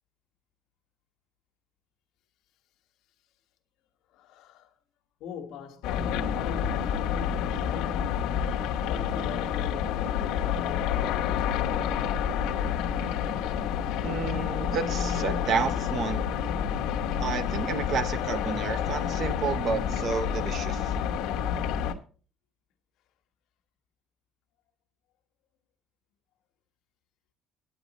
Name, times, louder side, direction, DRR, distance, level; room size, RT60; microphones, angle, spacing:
voice 1, 4.1-4.7 5.2-11.7, left 7 dB, 60° left, 1.4 m, -43 dB
sound 1, 5.8-21.9, left 8 dB, 75° left, 1.0 m, -29 dB
voice 2, 14.0-16.2 17.2-20.9, right 6 dB, 40° right, 0.7 m, -31 dB
9.5 x 9.2 x 4.1 m
cardioid pair, 175°, 0 cm